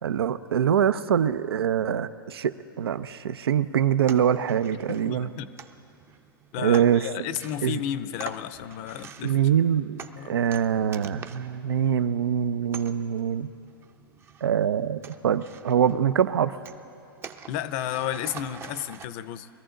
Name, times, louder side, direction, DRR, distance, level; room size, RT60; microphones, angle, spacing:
voice 1, 0.0-5.3 6.6-7.1 7.6-7.8 9.2-13.5 14.4-16.5, right 9 dB, 85° right, 13 dB, 0.5 m, -24 dB
sound 1, 4.1-19.1, right 6 dB, 20° right, 0.5 m, -46 dB
voice 2, 4.7-5.5 6.5-9.4 10.2-10.4 17.5-19.5, left 11 dB, 45° left, 14 dB, 0.6 m, -32 dB
22.5 x 13.5 x 3.8 m, 2.8 s
hypercardioid pair, 125°, 12 cm